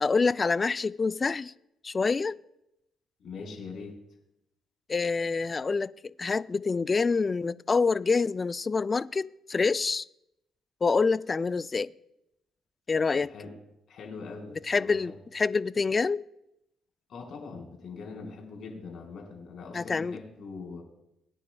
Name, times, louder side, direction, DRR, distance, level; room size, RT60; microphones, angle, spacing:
voice 1, 0.0-1.5 1.8-2.4 4.9-10.1 10.8-11.9 12.9-13.3 14.6-16.2 19.7-20.2, left 4 dB, 30° left, 0.3 m, -26 dB
voice 2, 3.2-3.9 13.1-13.5 13.9-15.2 17.1-20.8, left 4 dB, 65° left, 4.2 m, -42 dB
21.5 x 9.7 x 2.3 m
cardioid pair, 90°, 0 cm